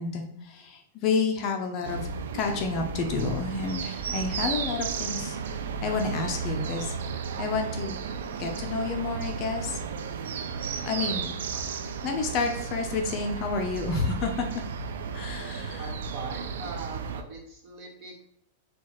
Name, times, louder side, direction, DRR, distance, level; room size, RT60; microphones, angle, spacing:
voice 1, 0.0-2.0 2.3-5.4 5.8-6.9 7.4-8.0 8.4-9.8 10.8-11.3 12.0-14.5 15.1-15.9, left 4 dB, 35° left, 3 dB, 0.5 m, -30 dB
sound 1, 1.8-17.2, right 5 dB, 85° right, 0.4 m, -34 dB
voice 2, 15.4-18.2, right 3 dB, 35° right, -1 dB, 1.3 m, -42 dB
4.4 x 2.4 x 4.4 m, 0.74 s
supercardioid pair, 160°, 0 cm